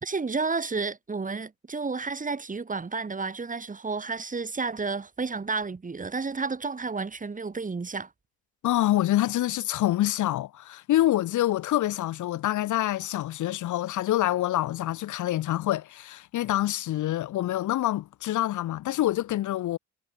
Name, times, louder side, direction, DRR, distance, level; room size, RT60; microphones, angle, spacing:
voice 1, 0.0-8.1, right 4 dB, 25° right, 2.4 m, -31 dB
voice 2, 8.6-19.8, left 14 dB, 80° left, 1.6 m, -26 dB
cardioid pair, 90°, 30 cm